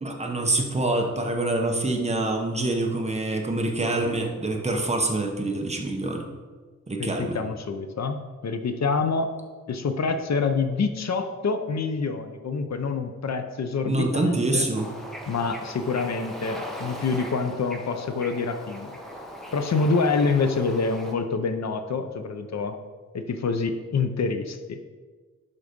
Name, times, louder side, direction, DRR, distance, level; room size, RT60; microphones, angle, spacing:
voice 1, 0.0-6.3 6.9-7.4 13.9-14.9, right 2 dB, 20° right, 1 dB, 1.0 m, -26 dB
voice 2, 7.0-8.2 8.4-9.3 9.7-14.7 15.3-18.9 19.5-22.8 23.1-24.8, left 4 dB, 65° left, 7 dB, 0.7 m, -26 dB
Bird / Ocean, 14.7-21.2, equal, ahead, 1.0 m, -39 dB
11.0 x 4.0 x 5.2 m, 1.4 s
wide cardioid pair, 155°, 29 cm